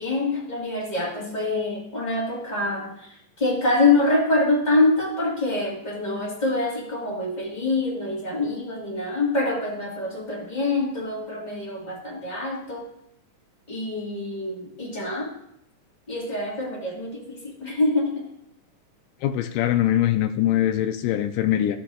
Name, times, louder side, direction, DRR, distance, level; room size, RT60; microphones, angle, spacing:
voice 1, 0.0-12.9 13.7-15.3 16.1-18.3, left 2 dB, 20° left, -4 dB, 1.1 m, -25 dB
voice 2, 19.2-21.8, left 12 dB, 90° left, 7 dB, 2.2 m, -22 dB
14.5 x 6.0 x 2.4 m, 0.77 s
omnidirectional pair, 3.7 m